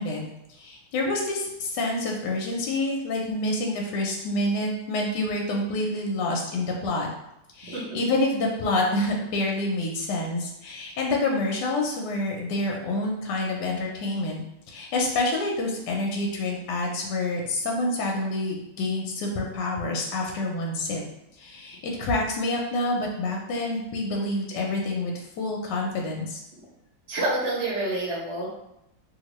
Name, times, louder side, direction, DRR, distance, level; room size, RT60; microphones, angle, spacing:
voice 1, 0.0-7.1 7.5-21.0 21.4-26.4, left 2 dB, 75° left, -1 dB, 1.2 m, -27 dB
voice 2, 7.7-8.0 27.1-28.5, right 2 dB, 45° right, -6 dB, 0.9 m, -28 dB
3.1 x 2.8 x 3.0 m, 0.83 s
omnidirectional pair, 2.0 m